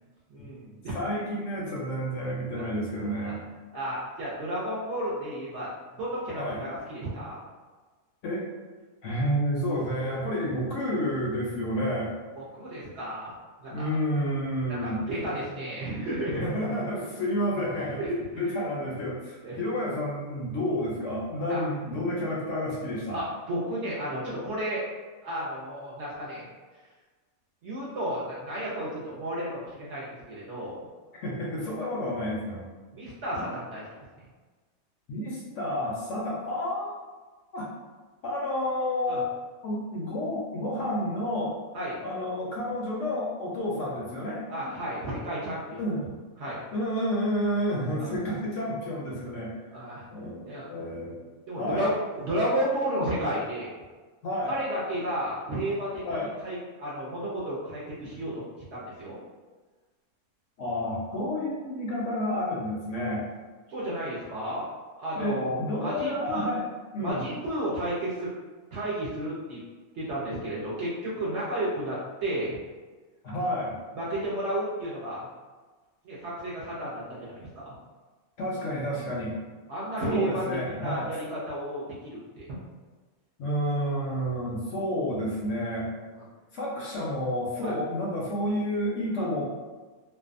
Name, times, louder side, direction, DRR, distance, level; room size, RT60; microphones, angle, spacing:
voice 1, 0.3-1.0 2.6-2.7 2.9-3.4 3.7-7.4 12.3-13.3 13.6-14.0 14.7-16.5 18.0-18.2 19.4-19.6 21.5-21.6 23.1-24.8 25.2-26.4 27.6-30.9 32.9-33.8 39.1-39.2 41.7-42.0 44.5-45.8 46.4-46.6 48.0-48.1 49.7-50.0 50.5-50.7 51.5-53.7 54.5-56.0 56.4-59.2 63.7-64.6 65.0-66.5 67.0-68.3 68.7-69.6 69.9-72.6 73.9-75.3 76.0-77.8 79.7-82.5 86.1-86.3 87.6-87.7 89.2-89.3, right 1 dB, 65° right, -7 dB, 0.7 m, -32 dB
voice 2, 0.9-3.4 6.4-6.6 8.2-8.5 9.0-12.1 13.7-15.0 16.3-18.0 18.4-23.2 31.2-32.6 33.4-33.5 35.1-36.9 37.5-37.7 38.2-39.3 39.6-41.5 42.0-44.4 45.8-46.0 46.7-49.5 50.1-51.2 51.6-51.9 54.2-54.5 56.0-56.3 60.6-63.2 65.1-66.6 66.9-67.2 73.2-73.8 78.4-79.4 80.0-81.1 83.4-85.9 86.5-89.4, equal, 70° left, -4 dB, 0.8 m, -30 dB
2.6 x 2.2 x 2.4 m, 1.3 s
omnidirectional pair, 1.6 m